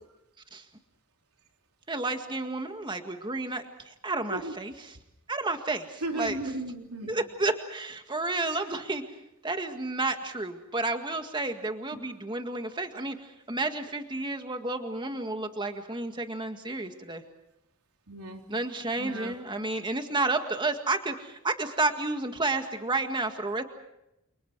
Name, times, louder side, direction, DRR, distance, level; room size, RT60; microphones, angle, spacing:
voice 1, 1.9-5.0 5.3-6.4 7.1-9.0 9.4-17.2 18.5-23.6, right 2 dB, 20° right, 6 dB, 1.9 m, -31 dB
voice 2, 6.0-7.1 18.1-18.4 19.0-19.3, right 1 dB, 85° right, 3 dB, 3.7 m, -35 dB
29.5 x 28.5 x 4.8 m, 0.85 s
head